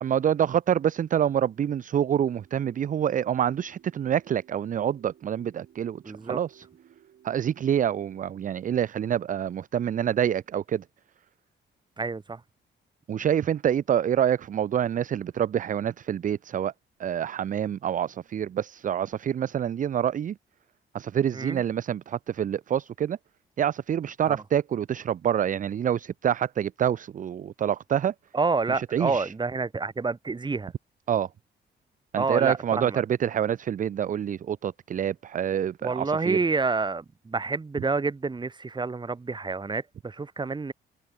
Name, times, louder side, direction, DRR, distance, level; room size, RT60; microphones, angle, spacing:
voice 1, 0.0-6.6 7.2-10.8 13.1-16.7 17.0-20.4 20.9-23.2 23.6-28.1 28.7-29.3 31.1-31.3 32.1-36.4, right 9 dB, 40° right, 0.5 m, -27 dB
sound 1, 2.2-8.5, right 10 dB, 65° right, 5.5 m, -57 dB
voice 2, 6.0-6.4 12.0-12.4 21.3-21.6 24.3-24.4 28.3-30.7 32.2-33.0 35.8-40.7, right 4 dB, 20° right, 1.4 m, -28 dB
open air
cardioid pair, 90°, 20 cm